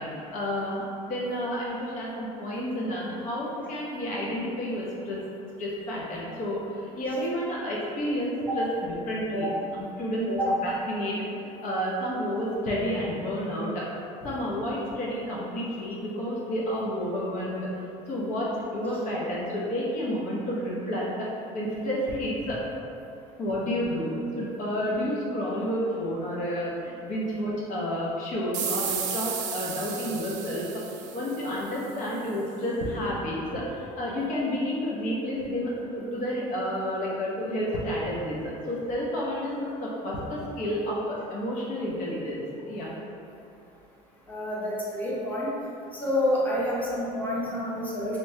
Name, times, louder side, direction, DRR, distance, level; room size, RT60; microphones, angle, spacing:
voice 1, 0.0-5.2 5.6-10.3 10.6-11.2 11.4-13.9 14.2-17.7 18.1-21.3 21.5-22.6 23.4-42.9, equal, 55° left, -5 dB, 0.7 m, -30 dB
sound 1, 28.5-31.9, right 7 dB, 55° right, 0.4 m, -33 dB
voice 2, 44.3-45.5 45.9-48.2, left 1 dB, 10° left, -8 dB, 0.8 m, -28 dB
3.2 x 2.9 x 2.7 m, 2.7 s
cardioid pair, 120°, 16 cm